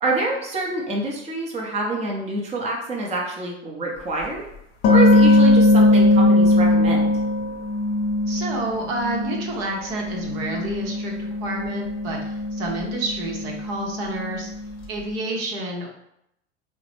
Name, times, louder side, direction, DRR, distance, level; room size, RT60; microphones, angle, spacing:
voice 1, 0.0-4.4 4.9-7.0, right 2 dB, 20° right, -2 dB, 0.7 m, -26 dB
sound 1, 4.2-4.3 4.8-9.5 9.8-14.7, left 1 dB, 50° left, 0.7 m, -20 dB
voice 2, 8.3-14.5 14.9-15.9, right 2 dB, 55° right, 0 dB, 0.8 m, -29 dB
3.8 x 2.1 x 3.1 m, 0.79 s
figure-of-eight pair, 80°, 36 cm